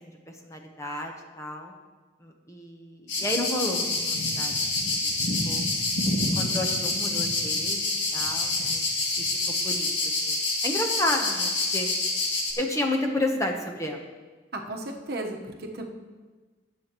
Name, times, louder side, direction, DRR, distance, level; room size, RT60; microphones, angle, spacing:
voice 1, 0.0-1.7 2.2-4.5 4.8-5.1 5.5-5.6 6.2-8.8 9.2-9.3 9.6-11.9 12.6-14.0, left 1 dB, 15° left, 2 dB, 0.9 m, -32 dB
sound 1, 3.1-12.5, left 2 dB, 75° left, 2.0 m, -27 dB
voice 2, 14.5-15.8, right 1 dB, 55° right, 2 dB, 1.1 m, -34 dB
18.5 x 7.6 x 3.0 m, 1.3 s
head